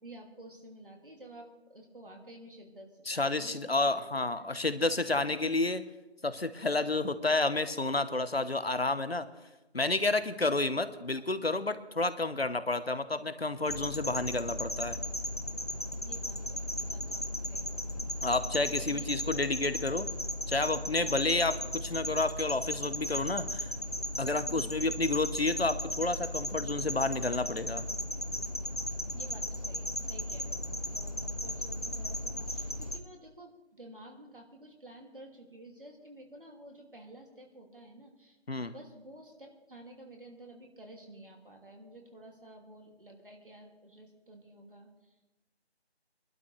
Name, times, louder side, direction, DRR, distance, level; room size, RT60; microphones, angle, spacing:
voice 1, 0.0-3.9 4.3-4.6 16.0-18.2 18.6-19.3 21.0-21.2 24.5-24.7 29.1-38.4 38.7-45.1, right 1 dB, 55° right, 1 dB, 2.7 m, -51 dB
voice 2, 3.1-5.8 6.2-9.3 9.7-15.0 18.2-20.1 20.5-23.7 24.2-27.9 38.5-38.7, left 2 dB, 65° left, 12 dB, 1.1 m, -30 dB
sound 1, 13.7-33.0, left 1 dB, 35° left, 0.7 m, -36 dB
23.0 x 12.0 x 3.4 m, 1.0 s
figure-of-eight pair, 170°, 33 cm